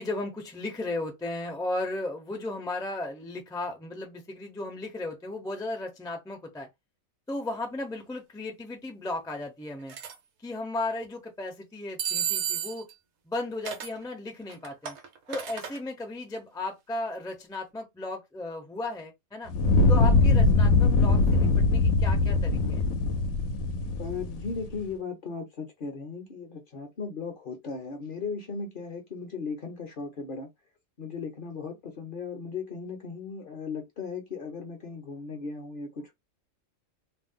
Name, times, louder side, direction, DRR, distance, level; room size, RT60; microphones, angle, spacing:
voice 1, 0.0-6.7 7.3-10.0 10.4-12.9 13.2-15.0 15.3-19.5 19.9-22.9, left 2 dB, 5° left, 0.3 m, -35 dB
sound 1, 9.9-10.1 12.0-12.9 13.7-14.0 14.5-15.8, right 9 dB, 60° right, 0.8 m, -32 dB
Fire, 19.5-24.7, left 3 dB, 80° left, 1.0 m, -22 dB
voice 2, 24.0-30.5 31.0-36.1, left 4 dB, 50° left, 0.7 m, -37 dB
2.5 x 2.0 x 3.5 m
omnidirectional pair, 1.4 m